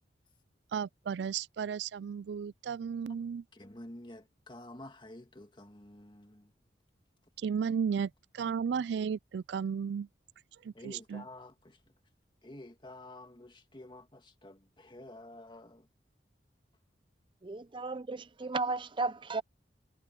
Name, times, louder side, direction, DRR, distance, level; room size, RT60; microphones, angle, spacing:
voice 1, 0.7-3.4 7.4-10.1 10.6-11.2, right 6 dB, 70° right, 0.3 m, -34 dB
voice 2, 3.5-6.5 10.7-11.8 12.4-15.9, left 1 dB, 25° left, 2.1 m, -50 dB
voice 3, 17.4-19.4, right 3 dB, 30° right, 0.6 m, -34 dB
head